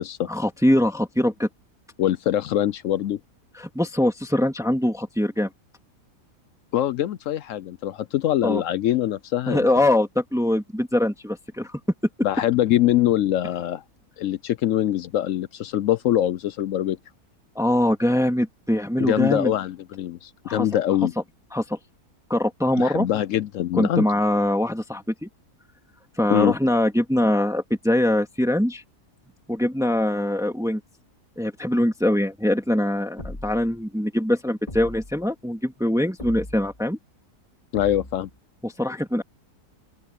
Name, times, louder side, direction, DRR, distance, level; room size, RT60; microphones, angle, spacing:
voice 1, 0.3-1.5 3.5-5.5 8.4-8.6 9.5-11.7 17.6-19.5 20.5-20.7 21.5-21.8 22.3-23.1 23.7-25.3 26.2-28.8 29.5-30.8 31.4-37.0 38.6-39.2, left 1 dB, ahead, 2.0 m, -23 dB
voice 2, 2.0-3.2 6.7-9.7 12.2-13.8 14.2-17.0 19.0-21.1 22.8-24.1 26.3-26.5 37.7-38.3, left 12 dB, 70° left, 0.8 m, -23 dB
sound 1, 33.2-33.8 34.7-35.3 36.2-36.8 37.7-38.4, left 1 dB, 20° left, 2.4 m, -38 dB
open air
omnidirectional pair, 1.7 m